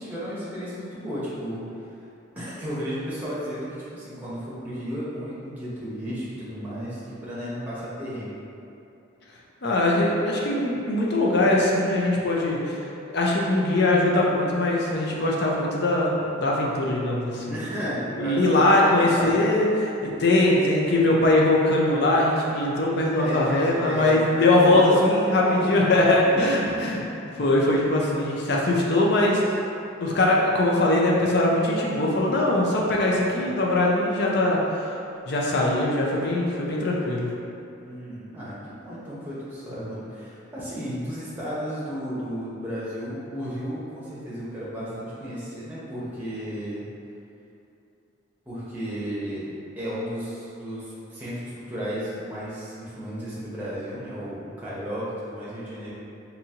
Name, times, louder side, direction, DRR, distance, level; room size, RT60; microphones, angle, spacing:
voice 1, 0.0-1.6 2.4-8.3 17.5-19.5 23.1-27.0 37.8-46.8 48.5-49.5 49.8-55.9, equal, 10° right, -10 dB, 0.8 m, -33 dB
voice 2, 9.6-12.9 13.1-17.6 18.2-27.0 27.3-29.6 30.0-34.9 35.3-37.3, left 1 dB, 55° left, -3 dB, 0.5 m, -21 dB
3.9 x 2.8 x 2.8 m, 2.8 s
head